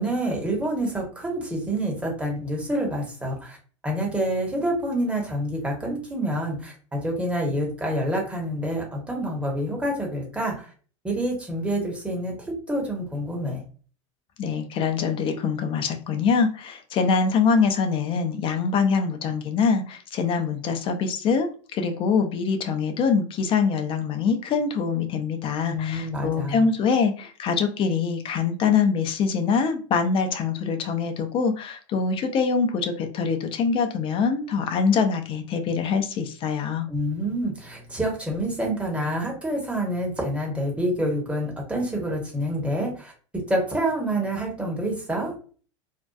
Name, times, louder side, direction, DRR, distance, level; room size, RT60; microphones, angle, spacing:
voice 1, 0.0-3.6 3.8-10.7 11.0-13.6 25.7-26.6 36.9-43.1 43.5-45.3, right 1 dB, 5° right, -1 dB, 0.9 m, -27 dB
voice 2, 14.4-36.9, left 5 dB, 35° left, 6 dB, 0.4 m, -24 dB
2.6 x 2.2 x 2.2 m, 0.40 s
hypercardioid pair, 110°, 16 cm